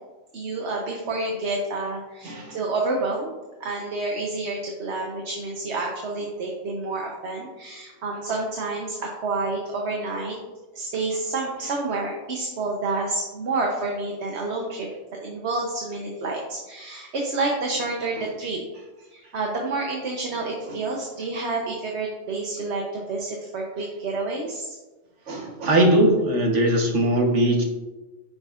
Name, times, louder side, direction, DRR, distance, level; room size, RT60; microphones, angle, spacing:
voice 1, 0.3-3.3 3.6-10.4 10.7-14.9 15.2-18.6 19.1-24.8, right 3 dB, 70° right, -1 dB, 1.2 m, -29 dB
voice 2, 2.2-2.6 20.7-20.8 25.3-27.6, right 1 dB, 85° right, 2 dB, 1.5 m, -20 dB
9.8 x 6.3 x 2.5 m, 1.2 s
omnidirectional pair, 1.2 m